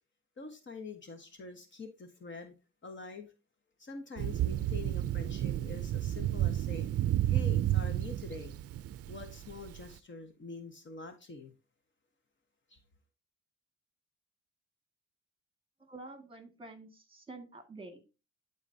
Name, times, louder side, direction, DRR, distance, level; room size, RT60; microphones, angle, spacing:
voice 1, 0.4-2.5 2.8-3.3 3.8-6.9 7.3-8.5 9.1-11.5 12.7-12.8, left 4 dB, 40° left, 1.4 m, -45 dB
Thunder, 4.2-9.9, right 12 dB, 50° right, 0.5 m, -31 dB
voice 2, 15.8-18.0, right 2 dB, 15° right, 2.1 m, -48 dB
12.0 x 4.1 x 2.8 m
cardioid pair, 90°, 30 cm